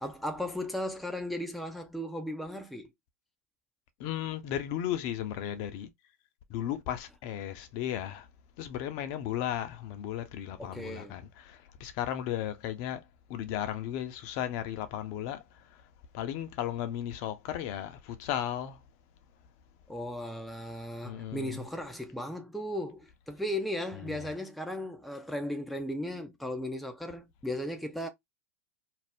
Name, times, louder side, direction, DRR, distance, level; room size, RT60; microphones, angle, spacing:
voice 1, 0.0-2.9 10.6-11.2 19.9-28.1, left 1 dB, ahead, 0.5 m, -36 dB
voice 2, 4.0-5.9 6.5-8.3 8.6-13.0 13.3-15.8 16.1-18.8 21.0-21.6 24.1-24.3, left 11 dB, 50° left, 0.6 m, -35 dB
2.6 x 2.0 x 3.4 m
hypercardioid pair, 95°, 8 cm